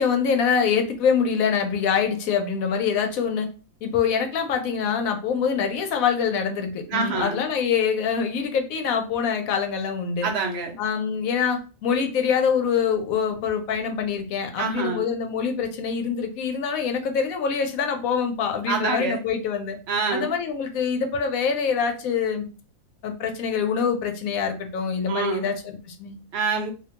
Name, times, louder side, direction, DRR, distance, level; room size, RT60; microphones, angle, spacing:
voice 1, 0.0-3.5 3.8-10.3 10.8-19.8 20.1-22.5 23.0-26.2, left 6 dB, 90° left, 5 dB, 1.0 m, -25 dB
voice 2, 6.9-7.4 10.2-10.8 14.6-15.1 18.7-19.2 19.9-20.3 25.1-25.5 26.3-26.7, right 4 dB, 60° right, 2 dB, 0.8 m, -26 dB
2.6 x 2.2 x 2.8 m, 0.34 s
omnidirectional pair, 1.4 m